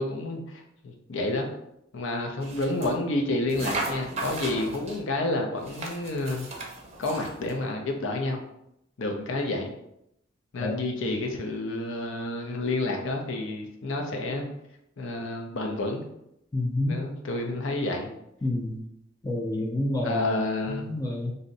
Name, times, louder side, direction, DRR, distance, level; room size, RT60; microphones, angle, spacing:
voice 1, 0.0-1.5 1.9-6.5 7.0-8.4 9.0-9.7 10.5-14.5 15.0-16.0 16.8-18.1 20.0-20.8, left 2 dB, 65° left, 2 dB, 0.5 m, -29 dB
sound 1, 2.4-3.0 3.5-5.0 5.6-7.6, right 2 dB, 35° right, 0.6 m, -36 dB
voice 2, 16.5-17.0 18.4-18.8 19.2-20.2 20.8-21.3, left 1 dB, 15° left, 1 dB, 0.3 m, -28 dB
2.6 x 2.1 x 3.8 m, 0.78 s
head